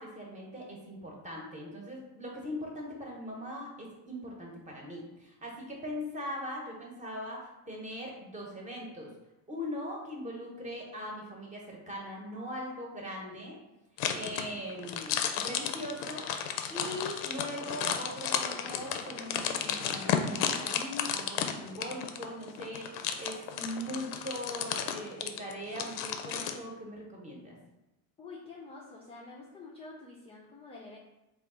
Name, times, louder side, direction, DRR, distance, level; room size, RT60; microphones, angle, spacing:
voice 1, 0.0-9.1 9.5-13.6 14.1-16.3 16.7-27.6, equal, 15° right, -1 dB, 0.9 m, -40 dB
sound 1, 14.0-26.6, left 8 dB, 70° left, 0.5 m, -33 dB
voice 2, 28.2-31.0, left 3 dB, 15° left, -5 dB, 0.4 m, -48 dB
3.4 x 2.4 x 3.7 m, 0.96 s
cardioid pair, 120°, 41 cm